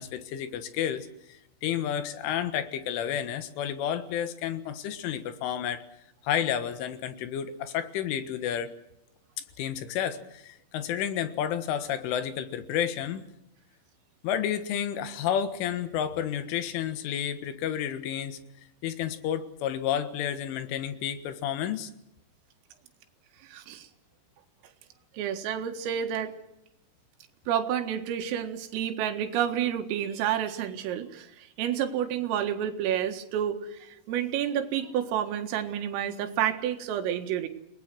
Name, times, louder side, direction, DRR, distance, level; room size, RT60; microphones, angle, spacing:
voice 1, 0.0-5.8 6.2-8.7 9.6-13.3 14.2-18.4 18.8-21.9, left 9 dB, 75° left, 10 dB, 3.8 m, -31 dB
voice 2, 23.4-23.9 25.1-26.4 27.5-37.5, right 10 dB, 80° right, 6 dB, 4.4 m, -30 dB
29.5 x 20.0 x 6.2 m, 0.82 s
omnidirectional pair, 5.8 m